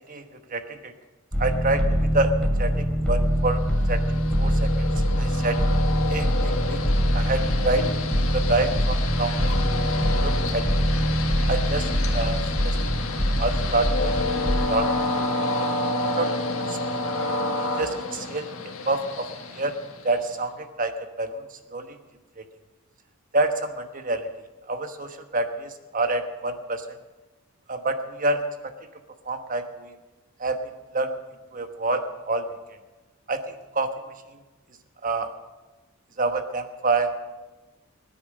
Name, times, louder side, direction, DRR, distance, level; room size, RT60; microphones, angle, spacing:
voice 1, 0.5-0.9 1.4-3.6 3.9-4.0 4.4-4.9 5.2-5.6 6.1-6.8 7.1-7.8 8.3-9.5 10.2-10.7 11.5-12.8 13.4-14.1 14.7-15.3 16.0-16.3 16.6-16.8 17.6-18.5 18.9-19.3 19.5-19.7 20.0-21.4 21.7-22.0 22.4-22.5 23.3-24.3 24.7-26.9 27.7-28.4 29.3-29.9 30.4-30.6 30.9-31.1 31.5-32.5 33.3-33.9 35.0-35.3 36.2-37.3, right 2 dB, 35° right, 7 dB, 1.2 m, -27 dB
sound 1, 1.3-14.7, equal, 5° left, 2.8 m, -24 dB
Train, 3.6-20.3, left 2 dB, 70° left, 1.8 m, -30 dB
20.5 x 10.0 x 6.6 m, 1.2 s
head